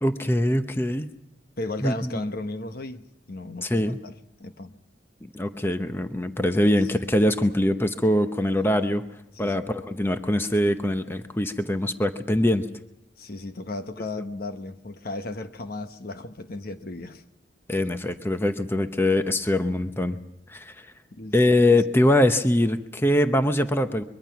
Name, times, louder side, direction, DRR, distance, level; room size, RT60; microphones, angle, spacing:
voice 1, 0.0-1.1 1.8-1.9 3.6-4.0 5.2-9.0 9.4-12.7 17.7-20.2 20.5-20.8 21.3-24.0, left 1 dB, 10° left, 0.8 m, -23 dB
voice 2, 1.6-4.7 6.6-6.8 9.3-9.6 13.2-17.2 21.1-21.3 21.6-21.8, left 2 dB, 55° left, 1.1 m, -35 dB
23.0 x 22.5 x 5.9 m
head